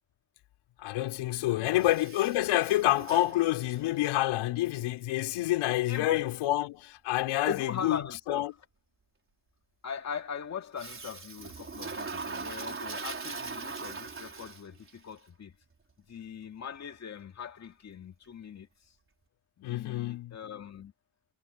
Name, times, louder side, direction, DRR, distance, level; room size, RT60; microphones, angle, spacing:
voice 1, 0.8-8.0 8.3-8.5 19.6-20.4, left 15 dB, 90° left, 4.4 m, -28 dB
voice 2, 1.5-1.9 5.9-6.3 7.4-8.5 9.8-15.6 16.1-18.9 19.6-20.9, left 7 dB, 35° left, 2.3 m, -40 dB
Toilet flush, 1.8-4.0 10.8-14.9, right 4 dB, 25° right, 4.7 m, -40 dB
cardioid pair, 130°, 48 cm